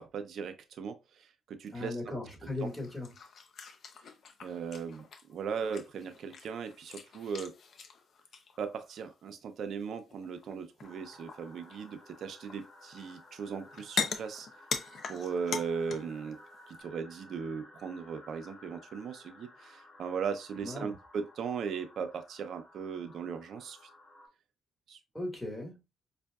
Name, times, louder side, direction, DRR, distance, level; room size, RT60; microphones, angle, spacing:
voice 1, 0.0-2.1 2.4-2.5 4.4-7.5 8.6-14.5 15.1-16.4 16.7-23.8 24.9-25.0, right 6 dB, 65° right, 0.7 m, -38 dB
voice 2, 1.7-3.1 20.6-21.0 25.1-25.8, left 2 dB, 15° left, 1.9 m, -38 dB
sound 1, 2.6-9.1 10.1-10.5 10.8-11.9 12.5-13.4 13.6-16.2 16.5-16.8, left 6 dB, 60° left, 0.6 m, -41 dB
sound 2, 10.8-24.3, left 1 dB, 40° left, 2.3 m, -55 dB
5.2 x 2.5 x 2.3 m
cardioid pair, 90°, 0 cm